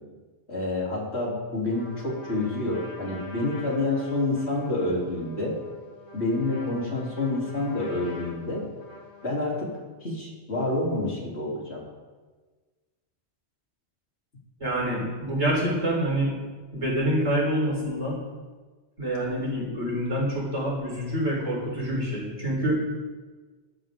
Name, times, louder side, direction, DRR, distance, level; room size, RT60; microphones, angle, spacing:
voice 1, 0.5-5.6 6.1-8.6 9.2-9.7 10.0-11.8, left 2 dB, 65° left, -4 dB, 3.9 m, -28 dB
Trumpet, 1.7-9.8, left 1 dB, 25° left, 3.1 m, -46 dB
voice 2, 14.6-16.3 16.7-18.2 19.0-22.8, right 1 dB, 80° right, -4 dB, 4.9 m, -26 dB
19.5 x 13.0 x 3.8 m, 1.4 s
omnidirectional pair, 1.2 m